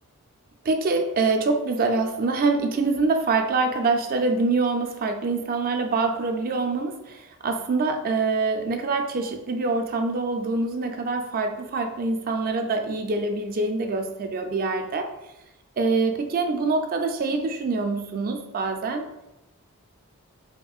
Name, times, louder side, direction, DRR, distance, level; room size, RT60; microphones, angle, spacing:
voice 1, 0.6-15.1 15.8-19.1, right 3 dB, 40° right, 5 dB, 0.4 m, -25 dB
4.3 x 2.5 x 2.3 m, 0.94 s
head